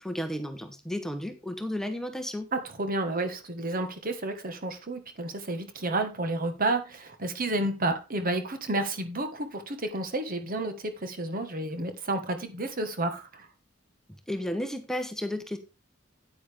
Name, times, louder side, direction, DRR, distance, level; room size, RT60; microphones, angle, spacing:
voice 1, 0.0-2.5 14.3-15.6, left 1 dB, 5° left, 0.9 m, -33 dB
voice 2, 2.5-13.5, right 2 dB, 45° right, 1.6 m, -31 dB
9.3 x 8.9 x 3.6 m
head